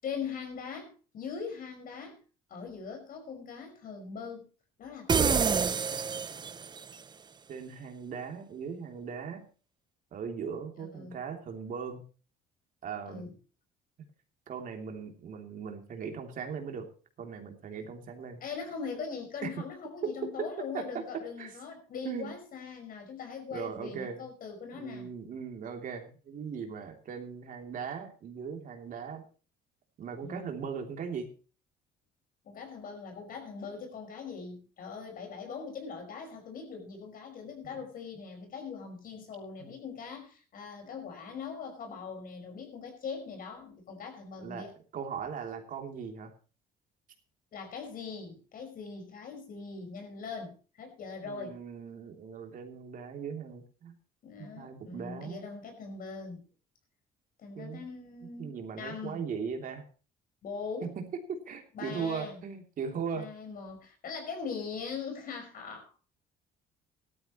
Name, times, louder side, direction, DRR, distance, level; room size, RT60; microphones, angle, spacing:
voice 1, 0.0-2.2 2.5-4.5 4.8-5.5 10.8-11.2 13.0-13.3 18.4-25.1 30.2-30.6 32.4-44.7 47.5-51.6 54.2-56.4 57.4-58.5 58.8-59.3 60.4-60.9 61.7-62.4 63.1-65.9, left 5 dB, 55° left, 4 dB, 5.4 m, -41 dB
sound 1, 5.1-6.9, right 6 dB, 25° right, 0.6 m, -27 dB
voice 2, 7.5-9.4 10.1-12.0 12.8-13.3 14.5-16.9 17.2-18.4 19.4-19.5 20.0-20.5 20.7-21.1 21.4-21.5 22.0-22.3 23.5-24.2 24.8-29.2 30.0-31.3 37.6-37.7 39.6-39.7 44.4-44.7 44.9-46.3 51.2-53.9 54.4-55.4 57.5-57.8 58.4-59.8 60.8-63.3, right 6 dB, 55° right, 4 dB, 3.1 m, -38 dB
17.5 x 13.0 x 3.1 m, 0.36 s
cardioid pair, 110°, 17 cm